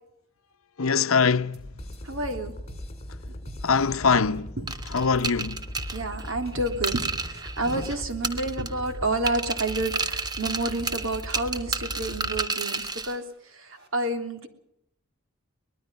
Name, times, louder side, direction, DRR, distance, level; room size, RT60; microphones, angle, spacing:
voice 1, 0.8-1.7 3.6-4.6 4.9-5.6 7.6-7.9, left 5 dB, 75° left, 0.8 m, -23 dB
sound 1, 1.5-13.9, equal, 50° right, 5.0 m, -46 dB
sound 2, 1.8-12.5, left 1 dB, 30° left, 3.2 m, -40 dB
voice 2, 2.0-2.5 4.6-4.7 5.9-13.2 13.9-14.5, right 2 dB, 70° right, 3.2 m, -29 dB
sound 3, 4.7-8.0 8.2-8.9 9.3-13.1, right 4 dB, 20° right, 1.4 m, -31 dB
24.0 x 20.5 x 5.5 m
head